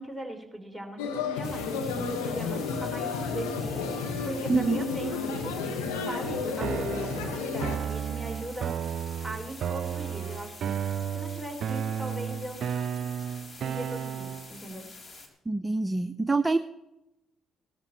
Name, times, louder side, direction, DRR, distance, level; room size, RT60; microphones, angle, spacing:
voice 1, 0.0-3.8 4.2-5.7 6.1-8.8 9.2-10.6 11.1-13.1 13.6-14.9, right 1 dB, ahead, 3 dB, 4.0 m, -39 dB
sound 1, 1.0-7.8, left 4 dB, 90° left, 1.3 m, -31 dB
sound 2, 1.4-15.3, left 3 dB, 45° left, 3.2 m, -47 dB
voice 2, 4.5-4.8 15.5-16.6, right 3 dB, 20° right, 11 dB, 0.6 m, -25 dB
sound 3, 6.6-14.6, right 8 dB, 65° right, 0.3 m, -33 dB
17.5 x 13.5 x 3.0 m, 0.93 s
hypercardioid pair, 50°, 0 cm